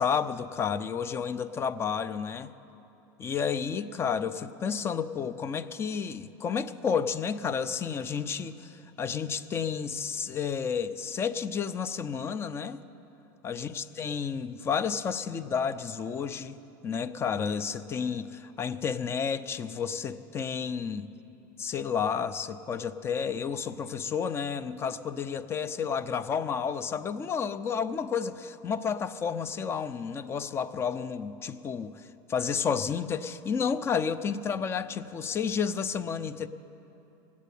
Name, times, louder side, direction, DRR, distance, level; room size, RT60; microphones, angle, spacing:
voice 1, 0.0-2.5 3.2-12.8 13.4-16.6 16.8-21.1 21.6-32.0 32.3-36.5, left 6 dB, 25° left, 14 dB, 0.5 m, -31 dB
18.0 x 8.4 x 8.4 m, 3.0 s
supercardioid pair, 135°, 10 cm